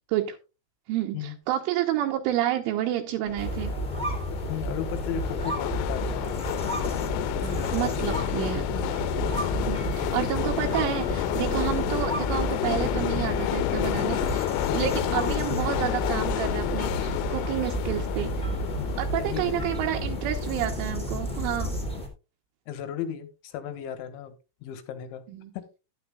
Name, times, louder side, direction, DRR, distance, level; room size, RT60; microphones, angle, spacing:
voice 1, 0.9-3.7 7.4-8.6 9.7-18.4 19.0-21.8 25.3-25.5, right 12 dB, 80° right, 3.2 m, -30 dB
sound 1, 3.3-22.0, left 11 dB, 90° left, 3.6 m, -30 dB
sound 2, 3.4-22.1, right 2 dB, 10° left, 0.3 m, -32 dB
voice 2, 4.5-6.4 7.4-8.5 14.7-14.9 18.8-19.7 22.7-24.3 24.6-25.2 25.5-25.7, left 9 dB, 75° left, 3.3 m, -36 dB
12.0 x 10.5 x 2.3 m
omnidirectional pair, 5.9 m